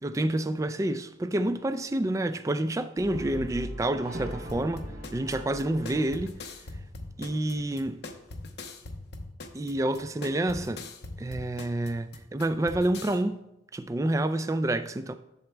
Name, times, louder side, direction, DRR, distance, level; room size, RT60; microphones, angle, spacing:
voice 1, 0.0-6.4 7.2-8.0 9.5-10.8 11.2-13.4 13.7-15.1, right 1 dB, 15° right, 0.3 m, -28 dB
Brass instrument, 3.0-7.2, equal, 55° right, 0.9 m, -41 dB
sound 1, 4.5-13.2, left 2 dB, 60° left, 0.7 m, -42 dB
11.0 x 7.1 x 2.2 m
head